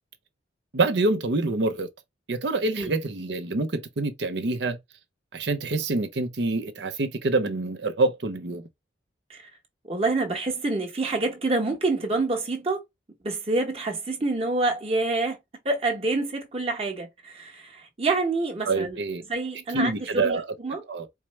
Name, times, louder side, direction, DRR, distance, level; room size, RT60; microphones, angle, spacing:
voice 1, 0.7-1.9 2.3-4.8 5.3-8.6 18.6-19.2 19.7-20.5 20.9-21.1, right 2 dB, 65° right, 0.7 m, -26 dB
voice 2, 9.9-12.8 13.2-15.4 15.6-19.0 19.3-20.8, right 3 dB, 30° right, 1.2 m, -27 dB
4.6 x 2.1 x 3.1 m
head